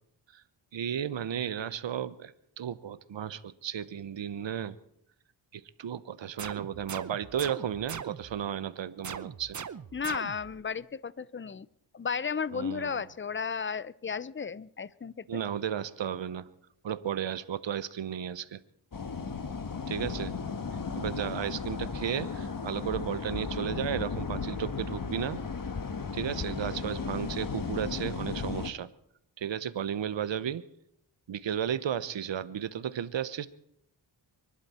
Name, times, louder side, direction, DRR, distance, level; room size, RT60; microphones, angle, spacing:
voice 1, 0.7-4.7 5.5-9.6 12.5-13.0 15.3-16.5 16.8-18.6 19.9-20.3 21.0-25.4 26.1-28.9 29.4-30.6 31.3-33.5, right 9 dB, 65° right, 15 dB, 1.0 m, -34 dB
sound 1, 6.4-8.5 9.0-10.6, right 7 dB, 40° right, 0.8 m, -41 dB
voice 2, 9.9-11.7 11.9-15.4, left 6 dB, 25° left, 20 dB, 0.7 m, -34 dB
sound 2, 18.9-28.7, left 5 dB, 45° left, 1.4 m, -35 dB
24.5 x 11.5 x 4.3 m, 0.73 s
cardioid pair, 50°, 48 cm